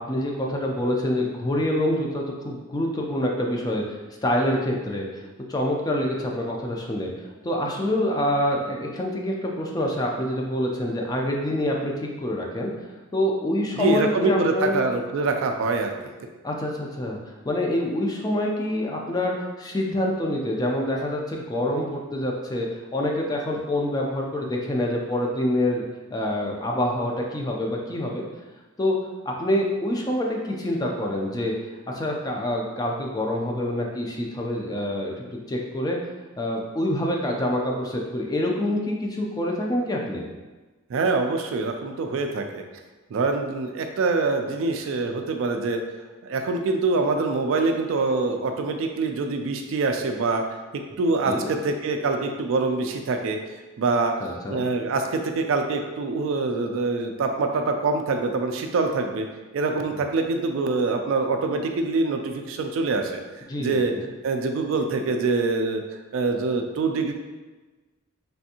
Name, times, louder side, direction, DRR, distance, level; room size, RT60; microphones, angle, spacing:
voice 1, 0.1-3.8 4.2-5.1 5.5-7.1 7.4-12.7 13.1-14.8 16.4-17.2 17.5-22.7 22.9-25.9 26.1-28.2 28.8-29.0 29.3-31.5 31.9-35.1 35.5-36.0 36.4-40.3 51.2-51.5 54.2-54.6 63.5-64.1, left 1 dB, 20° left, 0 dB, 0.3 m, -26 dB
voice 2, 13.8-15.9 40.9-42.6 43.1-45.8 46.2-50.4 50.7-53.4 53.8-54.1 54.5-59.3 59.5-63.2 63.6-63.9 64.2-65.8 66.1-67.1, right 3 dB, 65° right, 4 dB, 0.3 m, -24 dB
3.3 x 2.5 x 2.7 m, 1.2 s
head